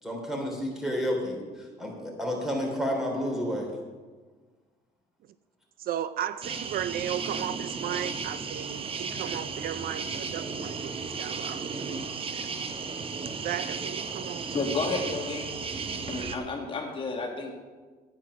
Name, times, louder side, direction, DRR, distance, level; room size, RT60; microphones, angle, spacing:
voice 1, 0.0-3.7, equal, ahead, 0 dB, 3.3 m, -30 dB
voice 2, 5.8-12.5 13.4-14.5, right 11 dB, 60° right, 14 dB, 0.4 m, -35 dB
sound 1, 6.4-16.4, right 5 dB, 35° right, 0.9 m, -35 dB
voice 3, 14.5-15.5 16.1-17.5, left 3 dB, 30° left, 1 dB, 1.8 m, -31 dB
9.9 x 9.1 x 6.3 m, 1.4 s
cardioid pair, 110°, 17 cm